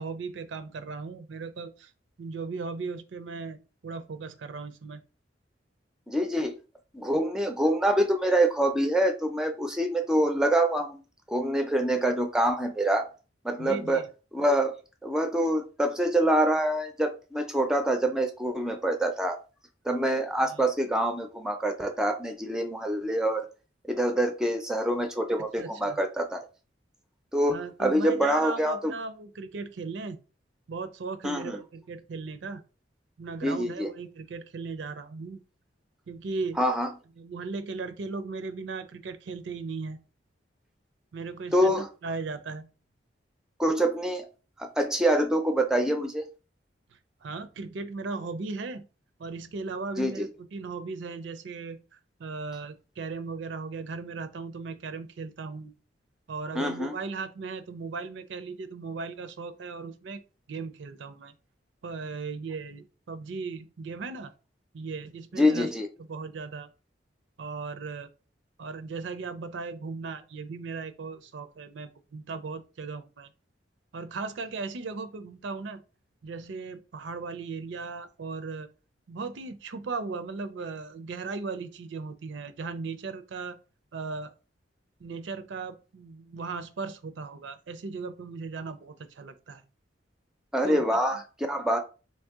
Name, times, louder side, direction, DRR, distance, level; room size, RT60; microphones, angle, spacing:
voice 1, 0.0-1.9 2.2-5.0 13.6-14.1 20.5-20.7 25.6-26.0 27.5-30.2 30.7-32.6 33.2-35.4 36.1-36.6 37.2-40.0 41.1-42.7 46.9-48.8 49.2-55.7 56.3-60.2 60.5-61.3 61.8-64.3 64.7-65.7 66.1-66.7 67.4-68.1 68.6-73.3 73.9-75.8 76.2-78.7 79.1-83.6 83.9-84.3 85.0-89.6 90.6-90.8 91.1-91.2, right 4 dB, 75° right, 10 dB, 0.5 m, -37 dB
voice 2, 6.1-6.5 6.9-11.0 11.3-13.1 13.4-14.0 14.3-14.7 15.0-19.4 19.9-23.4 23.9-26.4 27.3-28.9 31.2-31.6 33.4-33.9 36.6-36.9 41.5-41.9 43.6-44.3 44.6-46.2 50.0-50.2 56.6-57.0 65.4-65.9 90.5-91.8, right 1 dB, 5° right, 5 dB, 0.4 m, -25 dB
3.2 x 2.7 x 3.5 m, 0.34 s
head